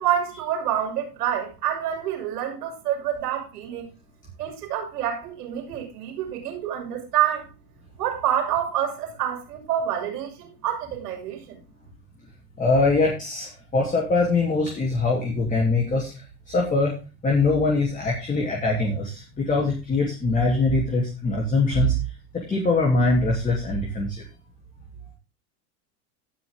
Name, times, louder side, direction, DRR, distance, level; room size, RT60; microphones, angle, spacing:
voice 1, 0.0-3.9 4.4-7.5 8.0-11.6, right 10 dB, 80° right, 6.3 m, -27 dB
voice 2, 12.6-16.1 16.5-16.9 17.2-22.0 22.3-24.3, left 3 dB, 15° left, 3.1 m, -22 dB
17.5 x 6.2 x 3.7 m
supercardioid pair, 135°, 47 cm